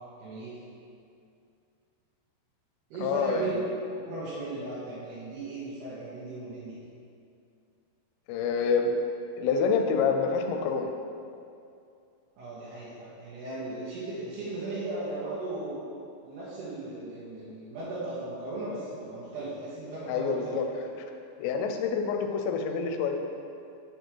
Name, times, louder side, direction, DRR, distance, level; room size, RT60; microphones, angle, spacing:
voice 1, 0.2-0.6 2.9-3.6 3.9-6.8 12.4-15.9 16.2-20.6, right 2 dB, 70° right, -11 dB, 3.3 m, -36 dB
voice 2, 3.0-3.4 8.3-8.9 9.4-10.9 20.1-20.6 21.4-23.2, left 5 dB, 85° left, 4 dB, 2.8 m, -27 dB
7.3 x 5.3 x 4.6 m, 2.5 s
omnidirectional pair, 5.1 m